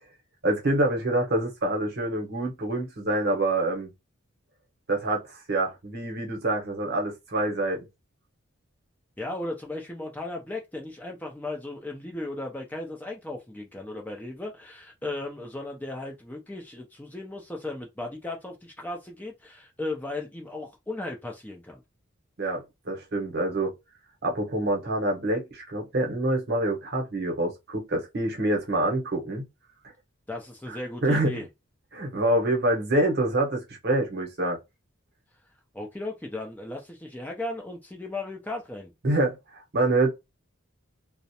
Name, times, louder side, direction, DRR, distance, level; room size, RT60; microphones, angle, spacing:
voice 1, 0.4-3.9 4.9-7.8 22.4-23.7 24.2-29.5 30.7-30.8 31.0-31.4 31.9-34.6 39.0-40.1, right 1 dB, 50° right, 0.8 m, -26 dB
voice 2, 9.2-21.8 30.3-31.5 35.7-38.9, left 2 dB, 10° left, 0.4 m, -36 dB
2.4 x 2.0 x 2.7 m
head